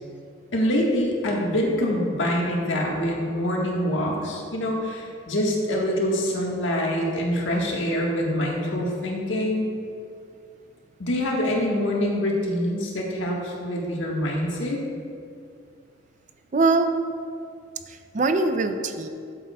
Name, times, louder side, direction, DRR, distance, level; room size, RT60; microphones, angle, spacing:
voice 1, 0.5-9.7 11.0-14.8, equal, 85° left, -2 dB, 1.5 m, -25 dB
voice 2, 16.5-16.9 17.9-19.1, right 3 dB, 40° right, 8 dB, 0.4 m, -22 dB
12.0 x 7.6 x 2.3 m, 2.3 s
head